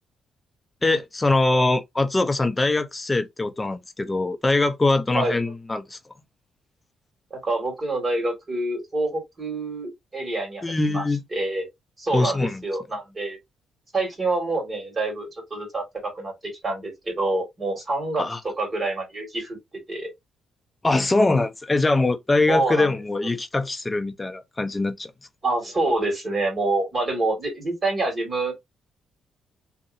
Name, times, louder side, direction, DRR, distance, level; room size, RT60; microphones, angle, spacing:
voice 1, 0.8-6.0 10.6-11.2 12.1-12.6 18.2-18.4 20.8-25.1, left 2 dB, 20° left, 0.6 m, -22 dB
voice 2, 5.1-5.5 7.3-11.0 11.3-11.7 12.0-13.4 13.9-19.6 19.9-20.1 22.5-23.3 25.4-28.5, right 2 dB, 30° right, 2.0 m, -27 dB
2.8 x 2.6 x 2.6 m
cardioid pair, 90°, 0 cm